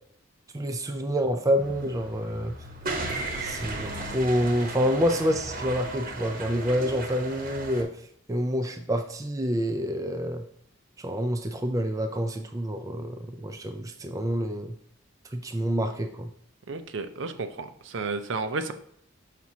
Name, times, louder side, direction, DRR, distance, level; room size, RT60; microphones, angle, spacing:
voice 1, 0.5-2.5 3.4-7.9 8.3-10.4 11.0-14.7 15.3-16.3, equal, 15° right, 6 dB, 0.4 m, -27 dB
sound 1, 1.6-7.8, right 2 dB, 45° right, 1.0 m, -35 dB
voice 2, 16.7-18.7, right 3 dB, 65° right, 8 dB, 0.5 m, -32 dB
5.9 x 5.8 x 2.8 m, 0.66 s
head